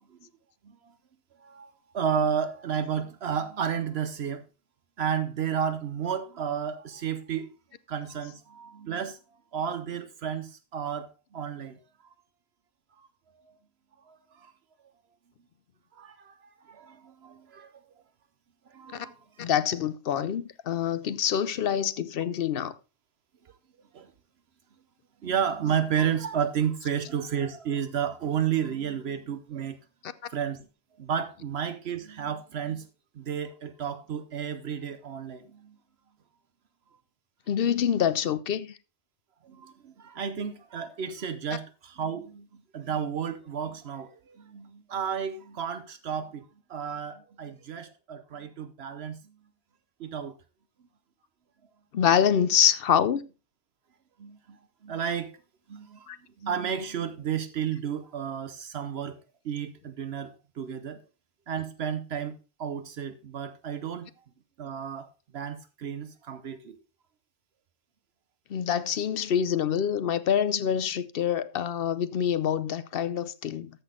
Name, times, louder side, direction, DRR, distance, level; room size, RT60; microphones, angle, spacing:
voice 1, 1.4-4.5 5.0-7.5 7.9-9.2 9.5-11.8 14.0-14.5 15.9-17.7 18.7-19.5 23.4-23.5 23.9-24.1 25.2-29.8 30.3-30.7 31.0-32.9 33.1-35.8 39.4-46.4 46.7-49.4 50.0-50.4 54.2-55.3 55.7-56.1 56.4-59.2 59.4-61.0 61.5-64.1 64.6-66.8, right 8 dB, 70° right, 1.0 m, -32 dB
voice 2, 19.4-22.7 30.0-30.1 37.5-38.7 51.9-53.2 56.1-56.2 68.5-73.7, left 8 dB, 65° left, 0.8 m, -26 dB
13.5 x 6.1 x 3.7 m
omnidirectional pair, 1.1 m